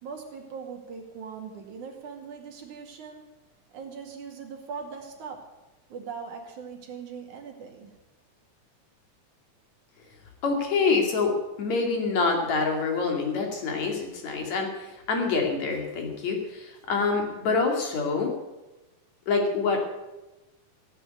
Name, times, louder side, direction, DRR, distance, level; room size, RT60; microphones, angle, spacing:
voice 1, 0.0-3.2 3.7-5.4 5.9-7.9, right 6 dB, 70° right, 2 dB, 3.7 m, -40 dB
voice 2, 10.4-11.3 11.6-18.3 19.3-19.8, left 4 dB, 60° left, 2 dB, 3.8 m, -26 dB
16.5 x 9.0 x 9.3 m, 1.1 s
omnidirectional pair, 3.6 m